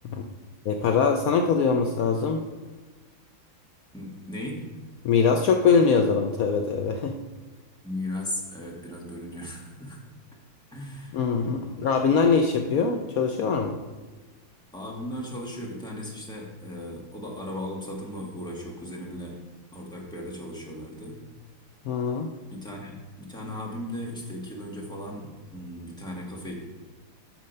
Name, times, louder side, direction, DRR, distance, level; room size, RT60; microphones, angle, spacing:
voice 1, 0.7-2.4 5.0-7.2 11.1-13.8 21.9-22.3, left 5 dB, 80° left, 4 dB, 0.7 m, -22 dB
voice 2, 3.9-4.6 7.8-10.0 10.7-11.2 14.7-19.3 19.7-21.1 22.5-26.5, left 1 dB, 5° left, -2 dB, 1.2 m, -36 dB
7.4 x 6.5 x 5.5 m, 1.3 s
omnidirectional pair, 2.2 m